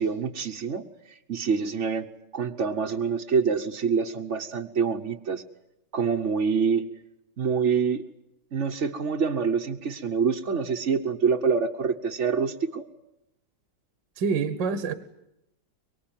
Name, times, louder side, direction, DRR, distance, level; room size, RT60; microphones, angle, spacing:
voice 1, 0.0-2.1 2.3-5.4 5.9-6.9 7.4-8.0 8.5-12.9, right 5 dB, 45° right, 0 dB, 1.3 m, -26 dB
voice 2, 14.2-14.9, right 5 dB, 70° right, 12 dB, 1.9 m, -26 dB
24.5 x 24.0 x 9.0 m, 0.83 s
omnidirectional pair, 2.0 m